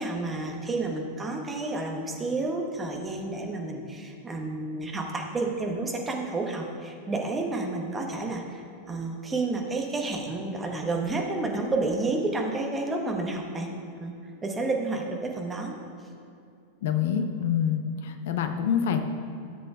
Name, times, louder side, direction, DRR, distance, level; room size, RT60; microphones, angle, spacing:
voice 1, 0.0-13.7 14.0-14.1 14.4-15.7, right 2 dB, 15° right, 1 dB, 1.1 m, -30 dB
voice 2, 16.8-19.0, left 8 dB, 55° left, 7 dB, 0.6 m, -26 dB
13.5 x 7.5 x 2.4 m, 2.5 s
figure-of-eight pair, 90°, 0 cm